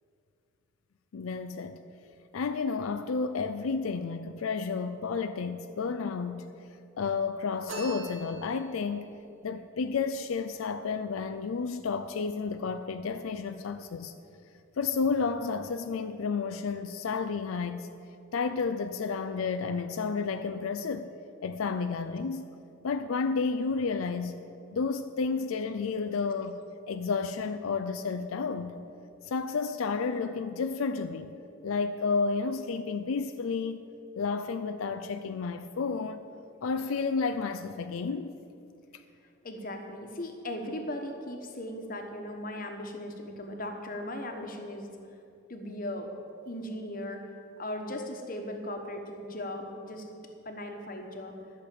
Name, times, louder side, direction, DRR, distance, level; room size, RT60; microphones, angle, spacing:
voice 1, 1.1-1.8 2.3-6.5 7.0-9.0 9.4-14.1 14.8-17.9 18.3-21.1 21.4-22.5 22.8-24.4 24.7-26.6 26.9-28.8 29.2-31.3 31.6-33.8 34.2-36.2 36.6-38.4 38.9-39.0, left 5 dB, 85° left, 0.4 m, -31 dB
sound 1, 7.7-8.9, right 2 dB, 75° right, 2.5 m, -40 dB
voice 2, 39.4-44.9 45.5-46.1 46.4-47.2 47.6-50.1 50.4-51.3, left 1 dB, 40° left, 1.2 m, -38 dB
11.5 x 6.5 x 8.5 m
head